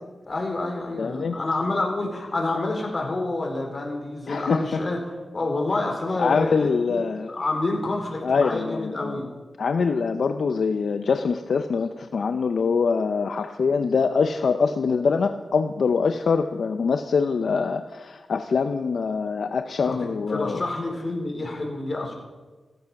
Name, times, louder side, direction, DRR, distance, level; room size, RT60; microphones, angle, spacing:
voice 1, 0.2-5.0 5.3-9.3 19.8-22.1, left 2 dB, 40° left, 1 dB, 4.0 m, -28 dB
voice 2, 1.0-1.4 4.3-4.8 6.2-7.3 8.2-9.2 9.6-20.6, left 5 dB, 75° left, 8 dB, 0.7 m, -24 dB
15.5 x 13.5 x 6.0 m, 1.3 s
wide cardioid pair, 95°, 0 cm